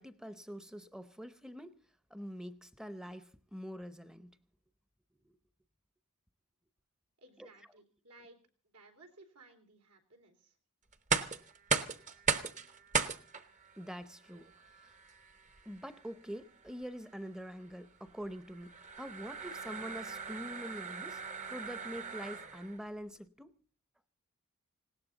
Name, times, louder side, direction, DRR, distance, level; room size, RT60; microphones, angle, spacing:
voice 1, 0.0-1.8 2.1-4.4 5.2-5.4 7.4-7.5 13.8-14.5 14.8-14.9 15.7-21.2 21.5-23.5, equal, 5° right, 0.7 m, -45 dB
voice 2, 7.2-8.4 8.7-10.6, right 2 dB, 85° right, 3.4 m, -59 dB
sound 1, 10.9-22.8, right 5 dB, 35° right, 0.9 m, -38 dB
20.0 x 17.0 x 3.9 m
head